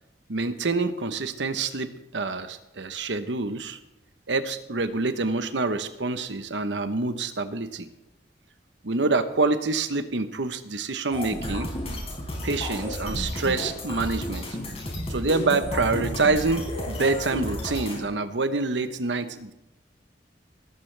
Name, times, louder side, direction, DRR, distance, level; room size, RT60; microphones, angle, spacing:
voice 1, 0.3-3.8 4.3-7.9 8.8-11.7 12.4-14.5 15.1-19.5, right 3 dB, 80° right, 10 dB, 1.0 m, -26 dB
sound 1, 11.1-18.0, left 1 dB, 35° left, 4.7 m, -32 dB
18.0 x 14.5 x 3.4 m, 0.93 s
head